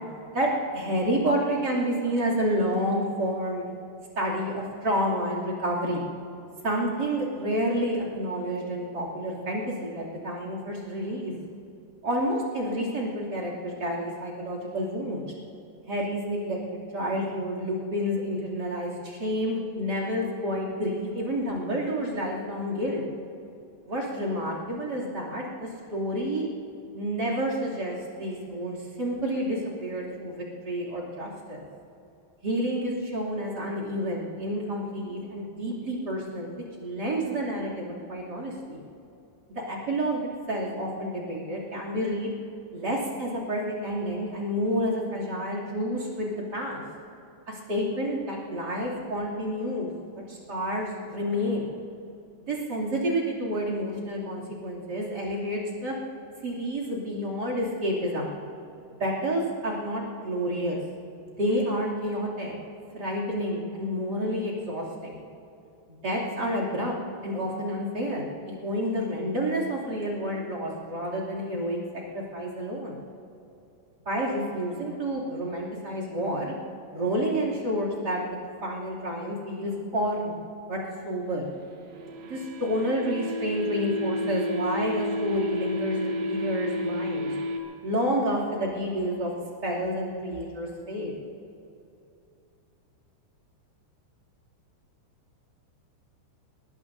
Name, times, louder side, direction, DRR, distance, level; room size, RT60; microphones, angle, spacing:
voice 1, 0.7-3.6 4.2-6.1 6.6-11.3 12.0-15.2 15.9-16.6 16.9-23.0 23.9-26.4 26.9-31.6 32.4-36.5 36.8-38.8 39.7-42.3 42.7-46.8 47.5-49.9 50.3-51.7 52.4-55.9 56.4-58.4 59.0-60.8 61.4-62.6 62.9-65.2 66.0-66.9 67.2-71.8 72.1-73.0 74.1-76.5 76.9-80.3 80.7-80.8 81.0-81.4 82.2-87.3 87.8-89.3 89.6-91.1, equal, 30° right, -2 dB, 2.3 m, -29 dB
sound 1, 81.6-87.6, left 1 dB, 75° right, 3.5 m, -31 dB
22.0 x 20.0 x 2.7 m, 2.7 s
omnidirectional pair, 5.3 m